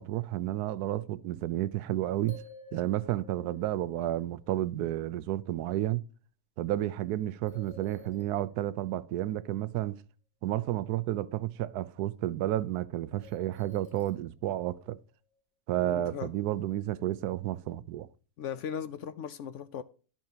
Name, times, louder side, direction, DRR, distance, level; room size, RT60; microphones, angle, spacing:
voice 1, 0.0-2.4 2.7-6.0 6.6-10.0 10.4-15.0 15.7-18.1, right 14 dB, 85° right, 1.1 m, -31 dB
sound 1, 2.3-4.2 7.5-9.2 13.2-15.1, left 3 dB, 5° left, 2.5 m, -53 dB
voice 2, 15.8-16.3 18.4-19.8, left 8 dB, 65° left, 0.8 m, -38 dB
11.5 x 7.2 x 2.8 m
omnidirectional pair, 1.6 m